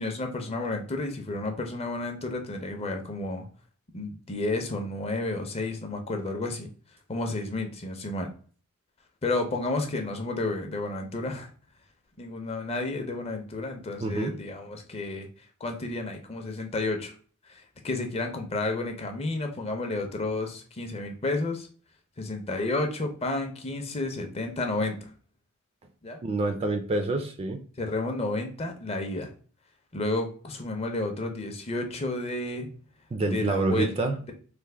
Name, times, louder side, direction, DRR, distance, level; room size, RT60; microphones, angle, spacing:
voice 1, 0.0-3.5 3.9-6.7 7.1-8.3 9.2-11.5 12.2-15.3 15.6-17.1 17.5-21.7 22.2-25.1 26.0-26.2 27.8-29.3 29.9-32.7 33.3-33.9, left 2 dB, 30° left, 4 dB, 0.5 m, -31 dB
voice 2, 14.0-14.4 26.2-27.6 33.1-34.2, right 2 dB, 30° right, 6 dB, 0.3 m, -27 dB
3.2 x 2.1 x 3.3 m, 0.42 s
head